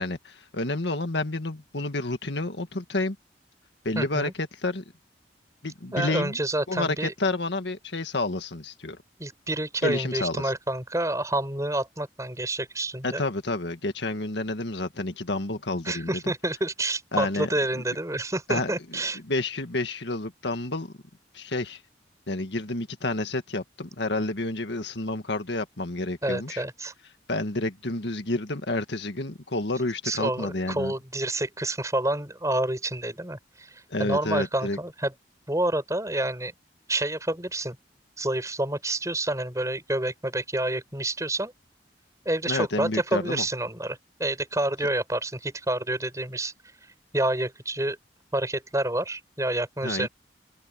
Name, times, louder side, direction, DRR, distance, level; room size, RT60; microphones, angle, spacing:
voice 1, 0.0-3.2 3.8-4.8 5.6-6.4 6.7-9.0 9.8-10.5 13.0-16.3 17.1-17.8 18.5-20.9 21.3-21.8 22.3-26.6 27.3-30.9 33.9-34.8 42.5-43.5 49.8-50.1, left 2 dB, 75° left, 1.8 m, -30 dB
voice 2, 4.0-4.3 5.9-7.1 9.2-13.2 15.9-19.2 26.2-26.9 30.0-35.1 35.5-36.5 36.9-37.8 38.2-41.5 42.3-46.5 47.1-48.0 48.3-50.1, right 1 dB, 20° right, 7.0 m, -28 dB
head